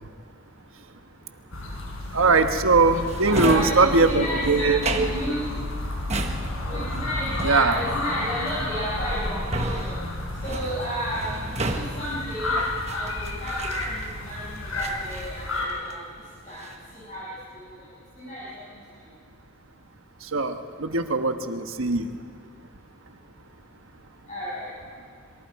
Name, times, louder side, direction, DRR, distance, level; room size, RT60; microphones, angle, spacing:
sound 1, 1.5-15.7, left 2 dB, 85° left, 5.1 m, -31 dB
voice 1, 2.1-5.1 7.4-7.8 20.3-22.1, right 3 dB, 80° right, 7 dB, 1.3 m, -21 dB
Drawer open or close, 3.1-14.3 14.8-16.1 16.4-16.9, right 2 dB, 30° right, 1.3 m, -33 dB
voice 2, 3.2-5.4 6.7-9.9 10.4-12.5 12.9-16.0 16.4-16.6 16.9-17.6 18.2-18.4 24.3-24.7, equal, 35° left, -10 dB, 6.6 m, -32 dB
27.0 x 23.5 x 4.8 m, 2.4 s
head